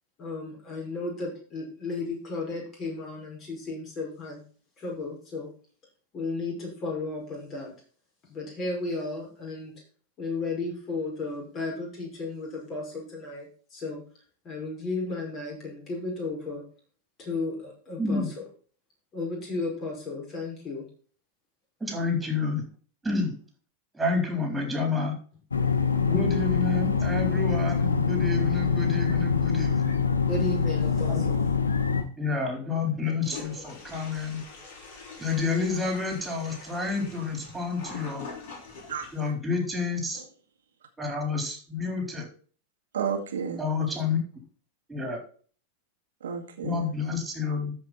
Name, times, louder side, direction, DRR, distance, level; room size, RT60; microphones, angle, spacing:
voice 1, 0.2-4.4 4.8-5.5 6.1-7.7 8.3-9.7 10.2-14.0 14.4-16.6 17.2-18.4 19.1-20.9 30.3-31.5 36.7-36.8, left 3 dB, 30° left, 5.6 m, -34 dB
voice 2, 18.0-18.3 21.8-22.6 23.0-23.3 23.9-25.1 26.0-29.9 31.1-31.2 32.2-34.4 35.2-38.3 39.1-40.2 41.0-42.3 43.6-44.2 44.9-45.2 46.6-47.7, left 4 dB, 10° right, 3.8 m, -29 dB
sound 1, 25.5-32.0, left 5 dB, 75° left, 1.2 m, -25 dB
Toilet flush, 33.2-39.3, left 4 dB, 50° left, 5.0 m, -44 dB
voice 3, 38.9-39.3 40.1-40.2 42.9-43.7 46.2-46.9, right 7 dB, 65° right, 2.0 m, -32 dB
13.5 x 5.5 x 4.3 m
figure-of-eight pair, 90°, 0 cm